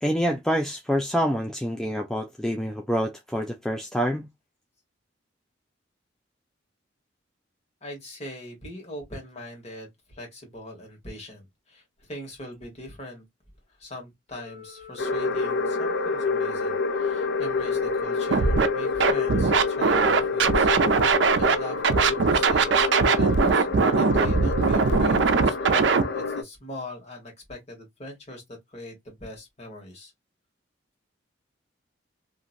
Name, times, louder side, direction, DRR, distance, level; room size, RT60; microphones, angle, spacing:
voice 1, 0.0-4.3, equal, 5° left, 0.3 m, -26 dB
voice 2, 7.8-13.2 13.8-20.7 21.0-22.9 23.1-28.4 28.7-30.1, left 1 dB, 35° left, 1.4 m, -41 dB
Organ, 14.3-25.4, left 10 dB, 30° right, 1.0 m, -45 dB
sound 1, 15.0-26.4, left 4 dB, 60° left, 0.5 m, -28 dB
Scratching (performance technique), 18.3-18.7 19.0-21.5 21.8-26.0, right 5 dB, 65° right, 0.5 m, -20 dB
2.8 x 2.5 x 2.4 m
head